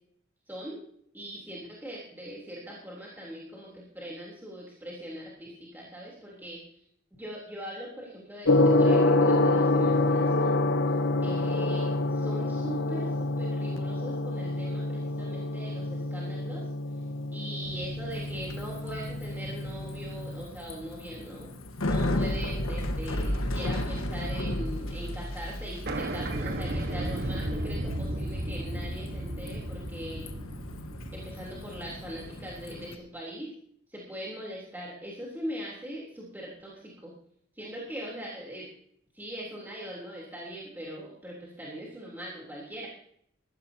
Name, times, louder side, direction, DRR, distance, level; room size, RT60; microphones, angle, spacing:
voice 1, 0.5-0.8 1.1-6.6 7.2-10.5 11.2-16.7 17.3-21.5 21.8-30.3 31.1-33.5 33.9-37.1 37.5-38.7 39.1-42.9, right 1 dB, 10° right, -5 dB, 3.6 m, -41 dB
Gong, 8.4-20.4, left 2 dB, 65° left, 1.0 m, -27 dB
sound 1, 17.6-20.2 20.7-20.8 22.3-22.7 22.9-24.4 24.6-24.7 24.9-25.0 25.3-25.4 25.8-32.6, right 1 dB, 50° right, 1.5 m, -35 dB
Bicycle, 18.1-32.9, left 1 dB, 80° left, 1.5 m, -35 dB
20.5 x 15.5 x 2.9 m, 0.67 s
head